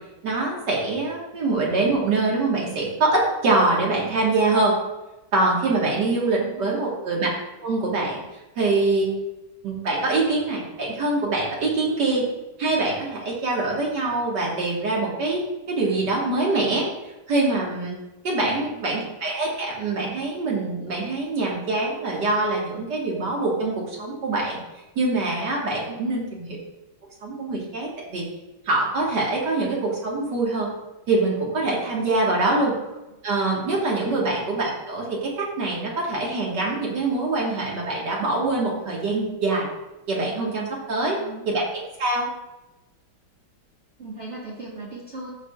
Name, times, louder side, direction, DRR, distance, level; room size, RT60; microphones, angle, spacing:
voice 1, 0.2-4.8 5.3-7.3 7.6-8.2 8.6-9.1 9.6-12.2 12.6-16.9 17.3-18.0 18.2-24.6 25.0-26.6 27.2-28.3 28.7-30.7 31.1-32.7 33.2-39.7 40.1-41.2 41.5-42.3, right 2 dB, 60° right, -3 dB, 2.1 m, -24 dB
voice 2, 6.3-6.9 18.4-18.9 25.9-26.2 32.4-32.5 34.1-34.2 41.0-41.5 44.0-45.3, right 3 dB, 40° right, -6 dB, 1.4 m, -38 dB
13.0 x 4.9 x 2.3 m, 1.0 s
omnidirectional pair, 2.1 m